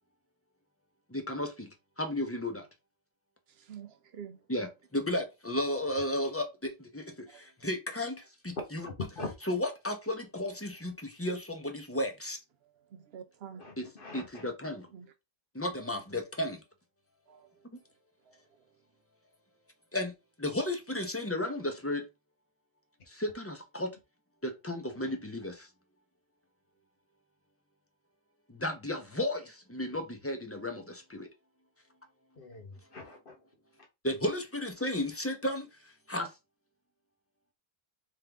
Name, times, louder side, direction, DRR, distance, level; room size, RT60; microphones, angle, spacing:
voice 1, 1.1-1.7 2.0-2.7 4.5-8.9 9.4-12.4 13.8-13.9 14.1-14.9 15.5-16.6 19.9-22.0 23.1-23.9 24.4-25.7 28.5-31.3 34.0-35.7 36.1-36.3, left 1 dB, 15° left, 0.8 m, -34 dB
voice 2, 3.5-4.4 7.3-7.4 12.6-13.6 14.9-15.1 17.3-17.6 18.3-18.4, right 8 dB, 70° right, 0.8 m, -48 dB
voice 3, 13.6-14.4 32.4-33.3, left 2 dB, 55° left, 1.3 m, -43 dB
3.7 x 3.5 x 3.4 m
omnidirectional pair, 1.1 m